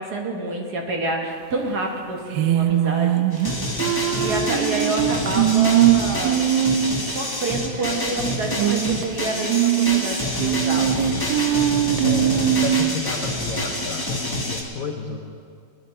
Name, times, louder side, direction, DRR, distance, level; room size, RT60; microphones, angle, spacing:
voice 1, 0.0-3.2 4.1-6.4 7.1-11.1, right 2 dB, 55° right, 1 dB, 1.9 m, -28 dB
sound 1, 2.3-7.2 7.5-7.6 7.8-7.9 8.5-9.0 9.4-13.0, right 12 dB, 75° right, 1.3 m, -21 dB
sound 2, 3.3-14.6, left 1 dB, 10° left, 1.2 m, -27 dB
voice 2, 12.0-15.2, left 4 dB, 55° left, -1 dB, 1.2 m, -31 dB
20.0 x 11.0 x 4.3 m, 2.3 s
omnidirectional pair, 2.2 m